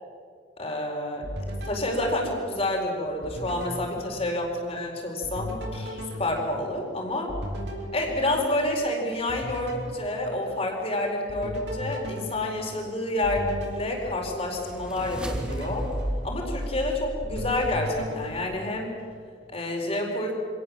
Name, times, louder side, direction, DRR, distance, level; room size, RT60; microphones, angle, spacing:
voice 1, 0.6-1.2 1.6-7.3 7.9-15.9 16.2-18.9 19.5-20.3, left 1 dB, 35° left, 1 dB, 4.4 m, -29 dB
sound 1, 1.2-2.8 3.2-4.8 5.2-8.9 9.3-10.9 11.3-14.8 15.2-16.8 17.2-19.2, equal, 70° right, 5.1 m, -37 dB
sound 2, 13.9-18.0, equal, 5° right, 2.3 m, -34 dB
25.5 x 17.5 x 7.5 m, 2.1 s
head